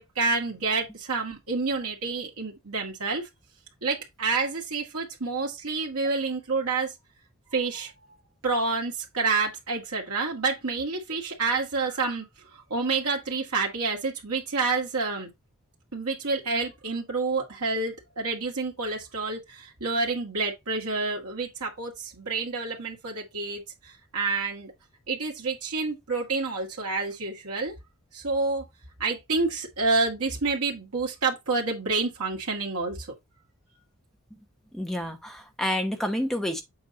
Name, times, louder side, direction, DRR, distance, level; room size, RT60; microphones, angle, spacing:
voice 1, 0.0-3.3 3.8-6.9 7.5-7.9 8.4-12.3 12.5-15.3 15.9-24.7 25.1-27.7 28.1-28.7 29.0-33.1, right 3 dB, 85° right, 1.9 m, -28 dB
voice 2, 34.7-36.6, left 1 dB, ahead, 0.9 m, -29 dB
7.8 x 4.0 x 4.1 m
head